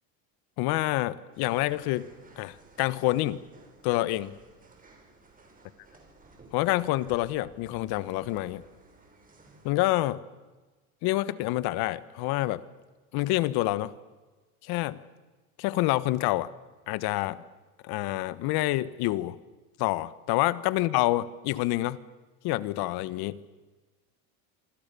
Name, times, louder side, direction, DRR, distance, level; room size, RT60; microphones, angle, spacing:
voice 1, 0.6-2.1 2.4-3.4 3.8-4.4 6.5-8.6 9.6-10.2 11.0-12.6 13.1-13.9 14.6-15.0 15.6-16.5 16.9-17.4 17.8-19.4 19.8-22.0 22.4-23.4, left 17 dB, 60° left, 16 dB, 1.4 m, -27 dB
sound 1, 1.3-9.7, right 2 dB, 20° right, 6.9 m, -56 dB
27.0 x 25.5 x 7.0 m, 1.2 s
supercardioid pair, 115°, 42 cm